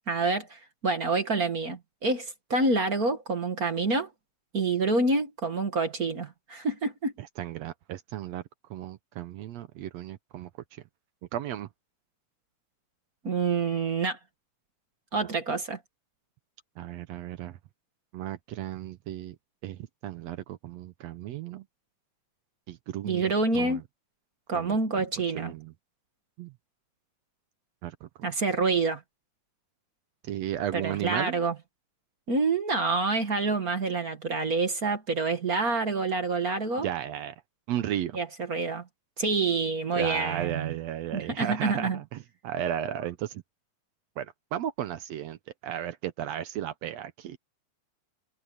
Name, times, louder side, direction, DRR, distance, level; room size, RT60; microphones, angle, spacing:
voice 1, 0.1-4.1 4.5-7.1 13.2-14.2 15.1-15.8 23.0-23.8 24.5-25.5 28.2-29.0 30.7-31.5 32.3-36.9 38.1-38.8 39.2-40.8 41.1-42.0, right 3 dB, 40° right, 1.4 m, -27 dB
voice 2, 7.2-8.4 8.7-10.5 11.3-11.7 16.8-17.6 18.1-19.3 19.6-21.6 22.7-23.8 24.5-25.0 25.3-25.7 26.4-26.5 27.8-28.3 30.2-31.4 36.8-37.3 37.7-38.2 39.9-43.4 44.2-45.4 45.6-47.4, right 11 dB, 75° right, 1.5 m, -34 dB
omnidirectional pair, 4.0 m